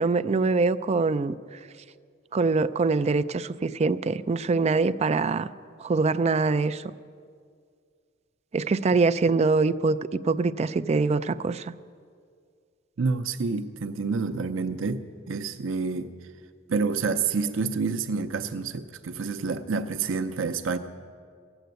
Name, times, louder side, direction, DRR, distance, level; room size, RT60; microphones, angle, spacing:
voice 1, 0.0-1.6 2.3-5.5 5.8-6.9 8.5-10.0 10.2-11.7, right 4 dB, 35° right, 13 dB, 0.4 m, -24 dB
voice 2, 13.0-16.1 16.7-20.8, right 4 dB, 85° right, 8 dB, 0.6 m, -28 dB
16.0 x 8.0 x 9.3 m, 2.1 s
head